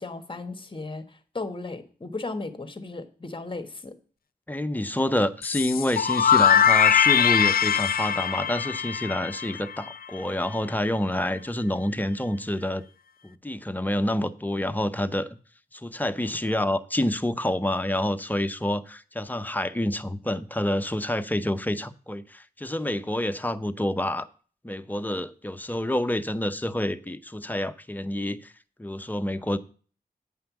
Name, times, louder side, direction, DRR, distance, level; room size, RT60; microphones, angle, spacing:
voice 1, 0.0-3.9, left 3 dB, 30° left, 1.4 m, -36 dB
voice 2, 4.5-12.8 13.2-15.3 15.7-24.3 24.6-28.5 28.8-29.6, left 1 dB, 10° left, 0.7 m, -28 dB
sound 1, 5.4-10.2, left 8 dB, 65° left, 0.5 m, -22 dB
9.1 x 5.7 x 7.0 m
wide cardioid pair, 85°, 16 cm